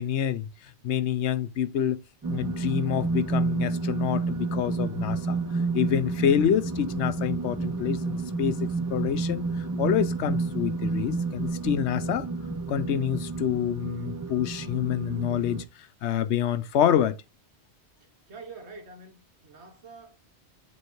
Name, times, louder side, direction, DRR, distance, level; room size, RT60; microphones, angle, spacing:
voice 1, 0.0-2.0 2.3-5.4 5.7-9.4 9.8-12.3 12.7-15.6 16.0-17.2, left 10 dB, 85° left, 0.9 m, -27 dB
sound 1, 2.2-15.6, right 3 dB, 30° right, 0.3 m, -30 dB
voice 2, 18.0-20.2, right 4 dB, 75° right, 1.6 m, -46 dB
7.7 x 3.2 x 4.5 m
omnidirectional pair, 1.1 m